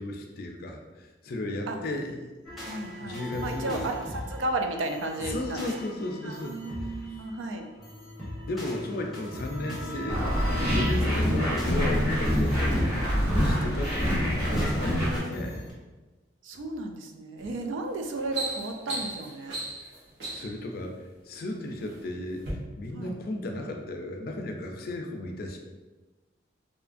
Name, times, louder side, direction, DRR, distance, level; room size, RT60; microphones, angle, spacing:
voice 1, 0.0-2.3 2.8-4.1 5.2-7.2 8.5-10.4 10.7-15.7 16.5-16.6 20.3-21.0 21.2-25.6, left 1 dB, 55° left, 2 dB, 0.4 m, -35 dB
sound 1, 2.4-15.7, equal, ahead, 0.6 m, -40 dB
voice 2, 2.7-4.0 4.3-5.7 6.2-7.7 12.5-12.7 16.4-19.6 22.9-23.2, right 2 dB, 90° right, 4 dB, 0.4 m, -34 dB
sound 2, 10.1-15.2, equal, 25° right, 1.1 m, -25 dB
sound 3, 17.4-17.6 18.0-20.6 21.4-22.0 22.4-22.5, right 2 dB, 70° right, 0.8 m, -36 dB
2.7 x 2.4 x 2.5 m, 1.2 s
head